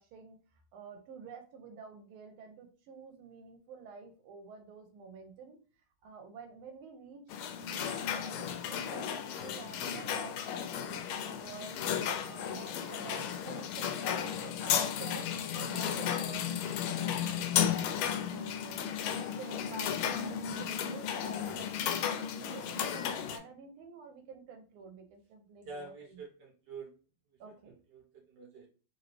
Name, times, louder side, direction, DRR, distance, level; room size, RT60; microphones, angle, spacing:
voice 1, 0.0-5.6 6.0-8.5 8.9-17.2 17.6-18.9 19.4-26.2 27.4-27.8, right 4 dB, 90° right, 4 dB, 1.5 m, -50 dB
sound 1, 7.3-23.4, left 8 dB, 90° left, 1.4 m, -34 dB
voice 2, 25.6-26.9 27.9-28.7, right 4 dB, 60° right, -1 dB, 1.7 m, -47 dB
4.0 x 2.8 x 3.1 m, 0.37 s
omnidirectional pair, 2.3 m